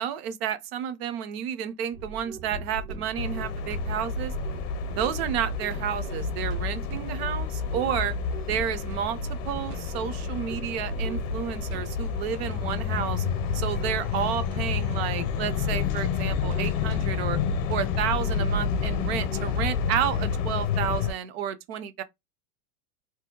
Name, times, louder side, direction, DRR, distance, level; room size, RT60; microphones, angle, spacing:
voice 1, 0.0-4.3 4.9-8.2 8.5-13.2 13.5-17.4 17.7-22.0, right 9 dB, 45° right, 0.5 m, -31 dB
sound 1, 1.9-19.5, right 2 dB, 75° right, 0.9 m, -39 dB
sound 2, 3.2-21.1, left 6 dB, 50° left, 0.7 m, -29 dB
2.7 x 2.1 x 3.6 m
supercardioid pair, 140°, 47 cm